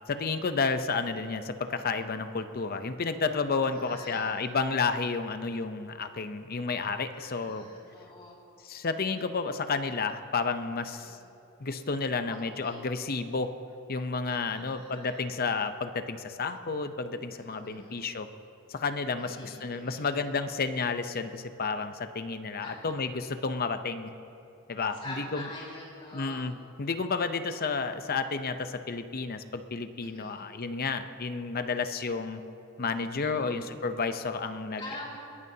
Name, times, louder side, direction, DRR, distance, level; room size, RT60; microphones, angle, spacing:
voice 1, 0.1-7.6 8.6-11.2 11.6-13.5 13.9-18.3 18.7-24.1 24.7-25.5 26.1-32.4 32.8-34.9, left 4 dB, 45° left, 9 dB, 0.7 m, -31 dB
voice 2, 3.5-4.3 7.1-8.4 11.0-11.2 12.3-12.4 12.6-12.8 14.3-15.3 17.3-18.0 19.2-20.1 22.6-22.9 25.0-26.4 30.0-30.3 33.0-33.6 34.8-35.2, left 1 dB, 25° left, -4 dB, 4.2 m, -45 dB
21.5 x 16.0 x 2.8 m, 2.7 s
head